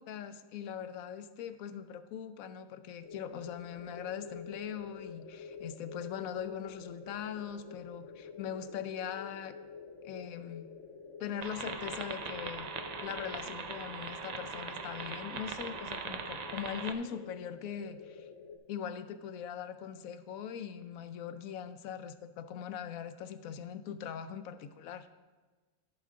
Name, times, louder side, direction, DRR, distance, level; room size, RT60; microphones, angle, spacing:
voice 1, 0.0-9.6 10.0-10.7 11.2-12.7 13.0-18.3 18.7-25.1, left 8 dB, 85° left, 10 dB, 1.0 m, -41 dB
sound 1, 3.0-18.6, left 5 dB, 65° left, 1.2 m, -48 dB
sound 2, 11.4-16.9, right 5 dB, 60° right, 0.4 m, -41 dB
14.5 x 5.0 x 3.7 m, 1.3 s
omnidirectional pair, 1.4 m